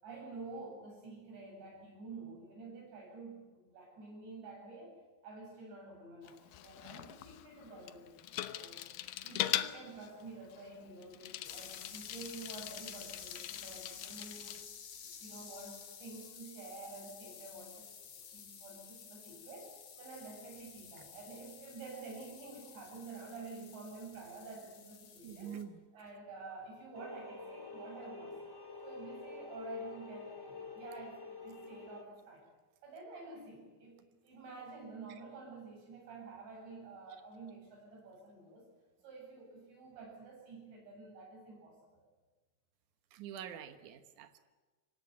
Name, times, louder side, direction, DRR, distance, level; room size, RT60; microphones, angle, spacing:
voice 1, 0.0-8.8 9.2-14.6 15.0-19.7 20.0-25.6 25.9-28.3 28.8-32.5 32.8-38.7 39.0-42.0, right 3 dB, 65° right, -1 dB, 10.5 m, -49 dB
Bicycle, 6.3-14.7, left 13 dB, 85° left, 2.0 m, -41 dB
sound 1, 11.4-25.6, left 7 dB, 45° left, 2.5 m, -52 dB
voice 2, 25.2-25.7 43.1-44.4, right 9 dB, 90° right, 8 dB, 1.7 m, -46 dB
sound 2, 26.9-32.0, left 4 dB, 15° left, 0.8 m, -47 dB
26.0 x 18.5 x 9.5 m, 1.3 s
omnidirectional pair, 5.4 m